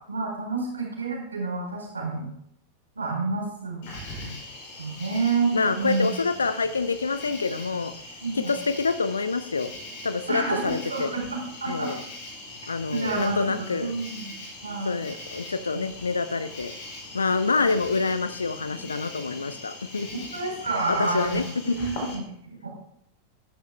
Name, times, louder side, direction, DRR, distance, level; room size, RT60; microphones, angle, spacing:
voice 1, 0.1-2.3 3.0-3.9 4.8-6.1 8.2-8.5 10.3-11.9 12.9-14.3 14.6-15.0 15.7-15.8 20.1-22.7, right 3 dB, 75° right, -1 dB, 3.9 m, -29 dB
Cricket, 3.8-22.1, left 2 dB, 50° left, 3.8 m, -41 dB
voice 2, 5.5-7.9 8.3-9.7 10.0-11.1 11.7-12.0 12.7-13.9 14.8-16.7 17.1-20.3 20.9-22.1, left 4 dB, 75° left, 13 dB, 0.6 m, -27 dB
13.5 x 11.0 x 2.3 m, 0.76 s
figure-of-eight pair, 90°, 0 cm